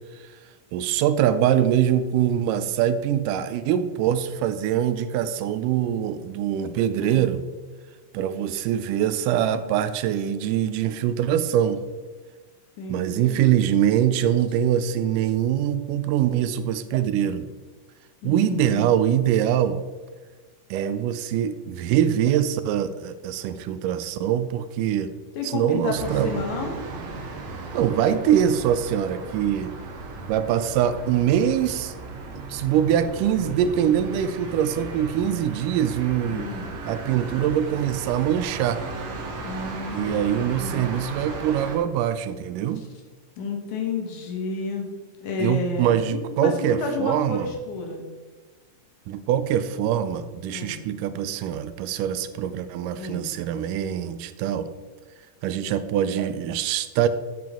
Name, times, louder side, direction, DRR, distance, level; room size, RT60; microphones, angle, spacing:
voice 1, 0.7-7.4 8.1-11.8 12.9-17.4 18.2-19.8 20.7-25.1 25.4-26.3 27.7-29.7 30.3-31.9 32.3-36.5 36.9-38.8 39.9-42.8 45.4-47.5 49.1-54.7 55.4-57.1, right 10 dB, 90° right, 12 dB, 2.2 m, -23 dB
voice 2, 7.0-7.3 12.8-13.7 18.2-18.9 25.3-26.7 36.3-36.7 39.4-41.0 42.7-42.9 43.4-44.9 45.2-48.0 50.5-50.8 53.0-53.3, left 4 dB, 70° left, 1 dB, 2.8 m, -31 dB
sound 1, 25.9-41.8, right 2 dB, 60° right, 2.0 m, -36 dB
9.3 x 7.7 x 3.6 m, 1.4 s
omnidirectional pair, 3.7 m